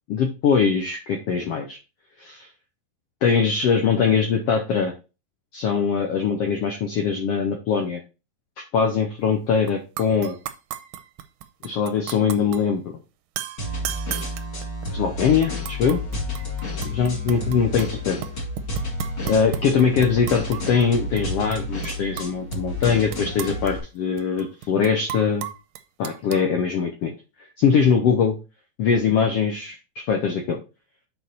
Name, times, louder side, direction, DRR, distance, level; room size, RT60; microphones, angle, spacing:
voice 1, 0.1-1.8 2.2-2.5 3.2-4.9 5.5-8.0 8.6-10.4 11.6-12.8 14.9-16.0 16.9-18.2 19.2-25.4 26.0-27.1 27.6-28.3 28.8-30.6, left 6 dB, 75° left, 4 dB, 1.4 m, -22 dB
sound 1, 9.7-9.8 10.0-12.6 13.4-15.0 15.4-17.9 18.2-20.9 21.2-21.3 21.5-22.6 22.8-26.4, right 11 dB, 80° right, 2.3 m, -35 dB
sound 2, 13.6-23.8, left 1 dB, 35° left, 2.5 m, -30 dB
8.2 x 4.7 x 4.1 m, 0.29 s
omnidirectional pair, 4.0 m